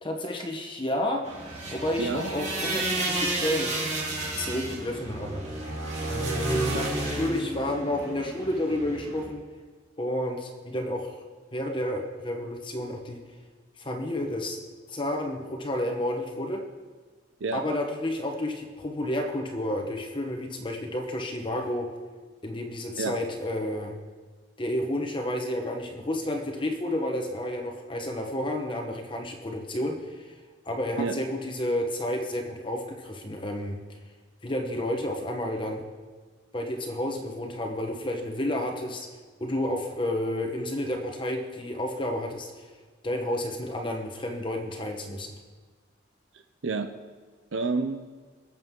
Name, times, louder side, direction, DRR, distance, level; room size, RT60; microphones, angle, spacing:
voice 1, 0.0-1.2 1.7-3.7 4.4-5.4 6.1-9.4 10.0-11.1 11.5-13.2 13.8-14.6 14.9-16.6 17.5-21.9 22.4-23.9 24.6-30.3 30.6-33.8 34.4-35.8 36.5-39.1 39.4-42.7 43.0-45.3, left 1 dB, 25° left, 2 dB, 1.1 m, -31 dB
sound 1, 1.2-9.2, right 2 dB, 35° right, 2.8 m, -31 dB
voice 2, 2.0-2.3 6.5-6.9 17.4-17.6 23.0-23.2 31.0-31.1 46.3-46.9 47.5-48.1, right 4 dB, 90° right, 7 dB, 0.6 m, -30 dB
22.0 x 7.9 x 3.7 m, 1.4 s
head